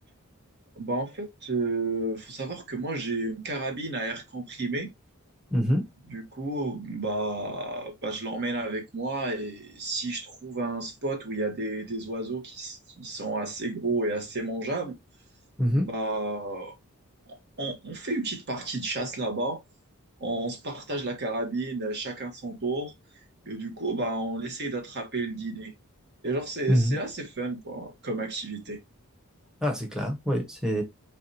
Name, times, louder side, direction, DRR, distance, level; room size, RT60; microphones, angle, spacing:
voice 1, 0.8-4.9 6.1-15.0 15.8-16.8 17.3-19.6 20.2-22.9 23.4-25.7 26.2-28.8, right 2 dB, 50° right, 1.2 m, -32 dB
voice 2, 5.5-5.8 15.6-15.9 26.7-27.0 29.6-30.8, equal, 5° right, 1.0 m, -25 dB
4.6 x 3.3 x 2.7 m
head